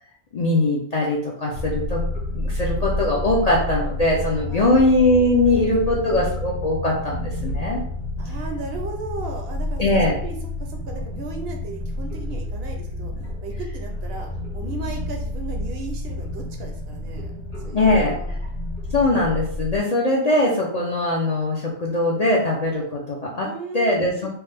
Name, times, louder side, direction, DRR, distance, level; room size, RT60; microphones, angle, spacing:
voice 1, 0.3-2.0 2.3-7.8 9.8-10.2 17.7-18.2 18.9-23.5 23.7-24.3, left 2 dB, 50° left, -3 dB, 0.5 m, -21 dB
sound 1, 1.5-19.8, left 1 dB, 75° left, 1.3 m, -29 dB
voice 2, 4.5-4.8 5.4-6.2 8.2-13.1 13.4-14.3 14.5-17.3 17.6-18.4 23.4-24.3, right 3 dB, 65° right, 2 dB, 0.8 m, -36 dB
3.1 x 2.1 x 3.2 m, 0.64 s
omnidirectional pair, 1.2 m